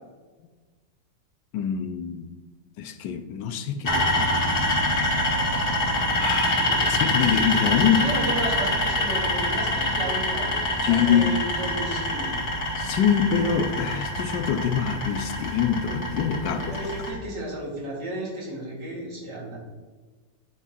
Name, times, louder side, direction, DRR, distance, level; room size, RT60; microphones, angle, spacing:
voice 1, 1.5-2.3 2.8-4.3 6.2-8.0 10.8-11.3 12.8-16.7, left 8 dB, 85° left, 1.3 m, -25 dB
sound 1, 3.8-17.1, left 1 dB, 60° left, 2.4 m, -25 dB
voice 2, 6.5-6.8 7.8-12.5 16.6-19.6, right 1 dB, 75° right, 2.7 m, -33 dB
9.5 x 3.6 x 5.7 m
omnidirectional pair, 1.9 m